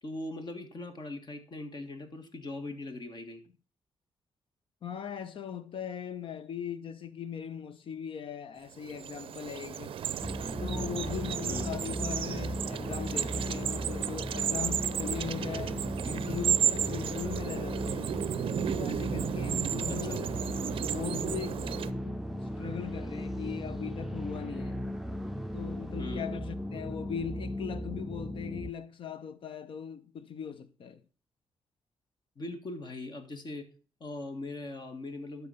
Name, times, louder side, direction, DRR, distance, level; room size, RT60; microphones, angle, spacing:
voice 1, 0.0-3.4 11.5-11.7 19.9-20.2 26.0-26.4 32.4-33.7 34.0-35.5, left 2 dB, 50° left, 1.8 m, -40 dB
voice 2, 4.8-10.0 10.6-15.8 16.0-18.1 18.7-20.3 20.8-22.2 22.6-24.8 25.5-31.0, left 8 dB, 65° left, 0.8 m, -39 dB
sound 1, 8.7-21.9, right 9 dB, 70° right, 0.5 m, -33 dB
sound 2, 10.2-28.7, equal, 5° right, 0.6 m, -37 dB
12.0 x 4.1 x 5.7 m
cardioid pair, 70°, 10 cm